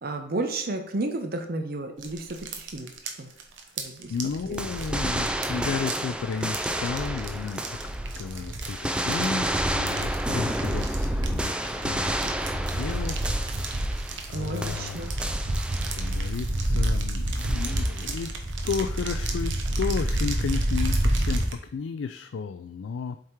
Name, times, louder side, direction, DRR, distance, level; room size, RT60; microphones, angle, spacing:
voice 1, 0.0-2.9 3.2-3.3 3.8-4.1 4.5-4.6 14.3-15.1, right 2 dB, 50° right, 5 dB, 0.7 m, -32 dB
sound 1, 2.0-21.5, right 1 dB, 85° right, 1.0 m, -29 dB
voice 2, 4.1-7.6 8.2-13.7 14.3-15.0 15.9-18.3 18.6-23.2, left 5 dB, 75° left, 9 dB, 0.3 m, -33 dB
sound 2, 4.6-8.3 8.6-14.3 14.6-16.3 17.4-18.1, right 1 dB, 5° right, 0.3 m, -31 dB
7.5 x 3.6 x 4.5 m, 0.66 s
head